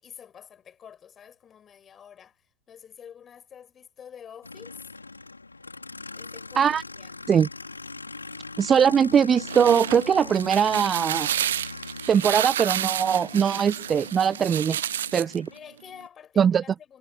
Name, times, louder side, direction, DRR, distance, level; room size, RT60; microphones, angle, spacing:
voice 1, 0.0-5.0 6.1-7.1 15.5-17.0, left 8 dB, 25° left, 6.4 m, -48 dB
Aircraft, 4.4-15.6, left 3 dB, 80° left, 3.3 m, -41 dB
voice 2, 8.6-11.3 12.1-14.8 15.1-15.5 16.4-16.6, right 7 dB, 20° right, 0.3 m, -21 dB
sound 1, 9.2-15.4, right 11 dB, 60° right, 0.9 m, -30 dB
figure-of-eight pair, 90°, 0 cm